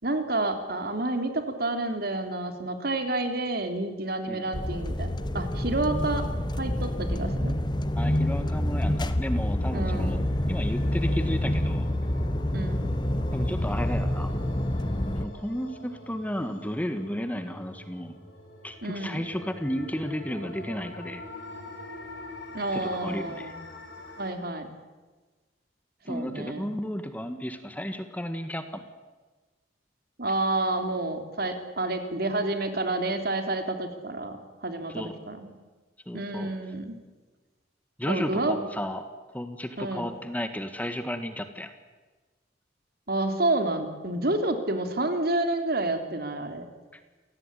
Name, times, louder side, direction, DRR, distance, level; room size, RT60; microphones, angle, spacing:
voice 1, 0.0-6.2 6.6-7.6 9.7-10.2 12.5-12.9 18.8-19.2 22.5-23.5 24.2-24.7 26.1-26.7 30.2-35.5 36.1-37.0 38.1-38.6 39.8-40.1 43.1-46.7, right 2 dB, 55° right, 7 dB, 3.3 m, -29 dB
sound 1, 4.5-15.3, left 1 dB, 25° left, 1.3 m, -27 dB
voice 2, 8.0-10.2 10.5-11.9 13.3-14.3 15.2-18.2 18.6-21.2 22.7-23.5 26.0-28.8 34.9-35.1 36.1-36.5 38.0-39.1 39.3-41.7, equal, 10° left, 9 dB, 1.6 m, -33 dB
sound 2, 10.1-24.3, left 2 dB, 85° left, 6.4 m, -45 dB
28.5 x 18.0 x 9.9 m, 1.3 s
head